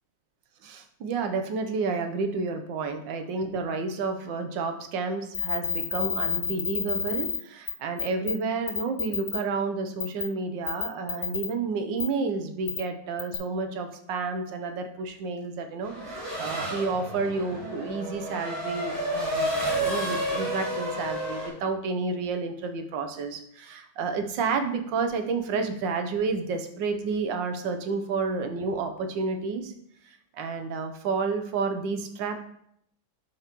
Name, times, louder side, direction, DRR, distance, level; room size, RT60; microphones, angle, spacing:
voice 1, 0.6-29.7 30.4-32.4, right 4 dB, 85° right, 6 dB, 1.5 m, -30 dB
sound 1, 5.3-7.4 7.7-7.8 8.0-8.3 8.7-9.4 10.0-10.2 10.7-11.5 12.0-12.1 12.7-12.8 13.2-13.4, left 7 dB, 65° left, 1.7 m, -29 dB
Race car auto racing / Accelerating revving vroom, 15.8-21.5, right 1 dB, 55° right, 3.8 m, -31 dB
11.5 x 4.6 x 3.0 m, 0.72 s
omnidirectional pair, 2.0 m